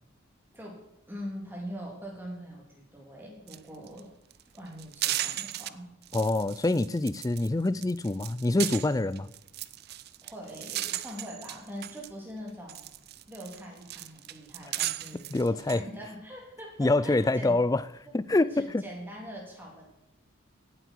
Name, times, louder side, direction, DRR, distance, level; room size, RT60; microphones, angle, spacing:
voice 1, 1.1-4.1 4.5-6.0 10.2-12.9 13.3-17.6 18.3-19.8, equal, 10° right, -2 dB, 3.1 m, -43 dB
sound 1, 3.5-3.6 3.9-4.0 4.3-5.7 6.0-7.5 7.8-12.1 12.5-15.8, right 14 dB, 50° right, 0.4 m, -36 dB
voice 2, 6.1-9.3 15.3-15.8 16.8-17.8 18.1-18.8, left 2 dB, 15° left, 17 dB, 0.3 m, -26 dB
17.5 x 8.1 x 4.6 m, 0.88 s
head